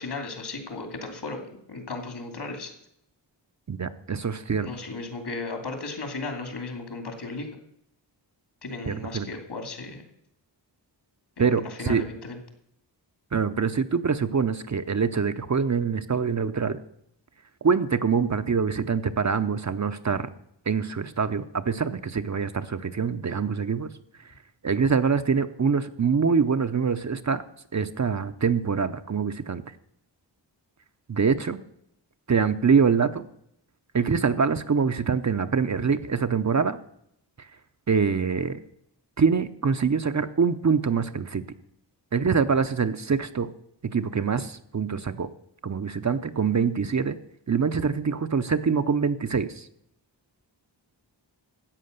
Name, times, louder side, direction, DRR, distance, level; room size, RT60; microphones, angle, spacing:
voice 1, 0.0-2.7 4.6-7.5 8.6-10.0 11.4-12.4, left 3 dB, 65° left, 6 dB, 2.8 m, -35 dB
voice 2, 3.7-4.7 8.9-9.3 11.4-12.0 13.3-16.8 17.6-20.3 20.7-23.9 24.6-27.4 27.7-29.6 31.1-31.6 32.3-33.2 33.9-36.8 37.9-38.6 39.2-41.4 42.1-43.5 43.9-45.3 45.6-47.2 47.5-49.7, right 5 dB, 40° right, 10 dB, 0.7 m, -24 dB
13.5 x 8.7 x 6.7 m, 0.73 s
wide cardioid pair, 125°, 44 cm